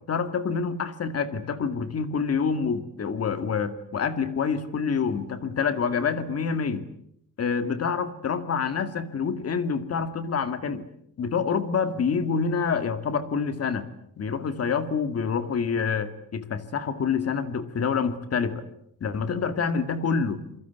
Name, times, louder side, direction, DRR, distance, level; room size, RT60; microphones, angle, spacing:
voice 1, 0.1-6.9 7.4-10.8 11.2-13.9 14.2-18.6 19.0-20.4, left 5 dB, 45° left, 11 dB, 2.1 m, -27 dB
28.5 x 23.0 x 8.2 m, 0.71 s
wide cardioid pair, 170°, 33 cm